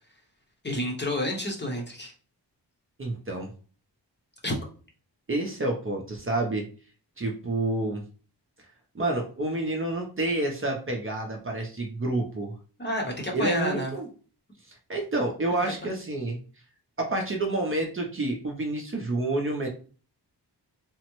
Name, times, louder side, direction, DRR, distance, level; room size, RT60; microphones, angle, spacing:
voice 1, 0.6-2.1 4.4-4.6 12.8-13.9, left 1 dB, 25° left, 0 dB, 0.7 m, -29 dB
voice 2, 3.0-3.5 5.3-6.6 7.2-8.0 8.9-12.5 13.3-14.1 14.9-16.4 17.0-19.7, right 2 dB, 30° right, 1 dB, 0.6 m, -28 dB
3.4 x 2.0 x 3.0 m, 0.39 s
wide cardioid pair, 125°, 42 cm